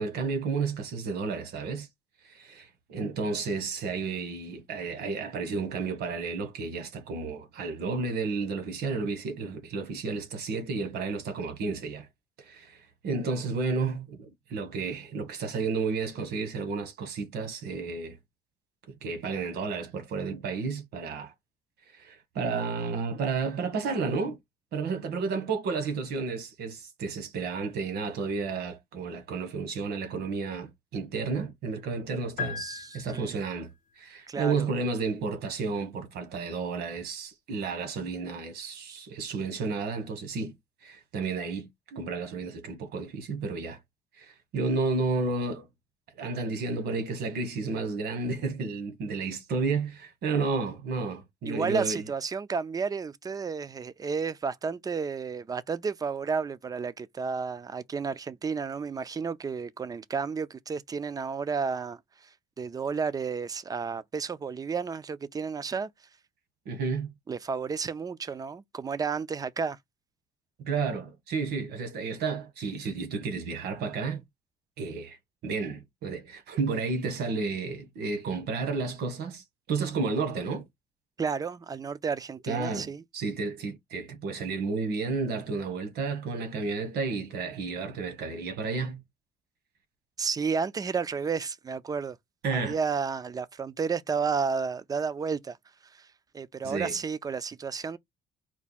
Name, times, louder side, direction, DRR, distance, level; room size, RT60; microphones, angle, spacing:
voice 1, 0.0-1.9 2.2-12.1 12.4-18.2 18.9-21.3 21.9-24.4 24.7-32.6 32.9-33.7 34.0-40.5 40.8-43.8 44.2-45.7 46.2-52.0 66.6-67.1 70.6-74.2 74.8-75.2 75.4-80.7 82.5-89.0 92.4-92.8 96.6-96.9, right 4 dB, 70° right, 1.5 m, -32 dB
sound 1, 32.4-33.7, left 7 dB, 50° left, 0.5 m, -37 dB
voice 2, 32.6-33.4 34.3-34.7 51.5-62.3 62.6-65.9 67.3-69.8 81.2-83.0 90.2-92.2 92.5-95.6 95.9-96.1 96.3-98.0, right 5 dB, 20° right, 0.4 m, -32 dB
4.6 x 2.2 x 4.1 m
cardioid pair, 110°, 17 cm